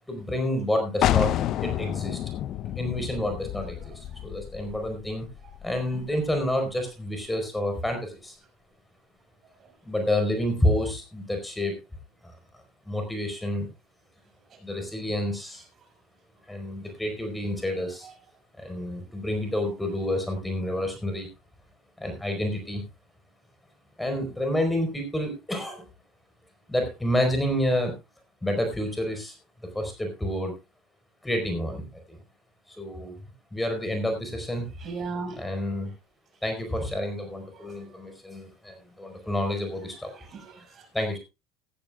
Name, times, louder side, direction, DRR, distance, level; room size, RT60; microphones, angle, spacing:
voice 1, 0.1-1.3 1.6-2.2 2.8-5.3 5.6-8.4 9.8-11.8 12.8-13.7 14.6-15.6 16.5-18.1 18.6-21.3 22.0-22.8 24.0-25.8 26.7-27.9 28.4-29.3 29.7-30.5 31.2-32.2 32.7-33.1 33.5-34.7 35.4-35.9 36.4-40.1 40.9-41.2, left 1 dB, 10° left, 4.4 m, -29 dB
sound 1, 1.0-6.6, left 12 dB, 55° left, 0.7 m, -29 dB
voice 2, 3.8-4.2 5.9-6.1 9.6-9.7 14.5-14.6 17.5-17.6 18.0-18.1 34.8-35.4 37.5-38.0 40.1-40.9, right 4 dB, 40° right, 5.6 m, -39 dB
15.5 x 13.5 x 2.4 m
hypercardioid pair, 75°, 0 cm